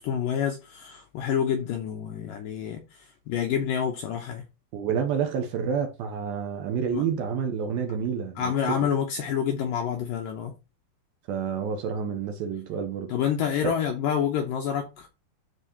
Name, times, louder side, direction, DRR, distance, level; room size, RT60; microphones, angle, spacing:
voice 1, 0.0-2.8 3.3-4.4 6.9-7.0 8.4-10.5 13.1-15.1, left 8 dB, 75° left, 2.1 m, -28 dB
voice 2, 4.7-8.8 11.3-13.1 13.6-13.7, right 7 dB, 75° right, 2.3 m, -29 dB
12.0 x 4.1 x 2.9 m
omnidirectional pair, 4.9 m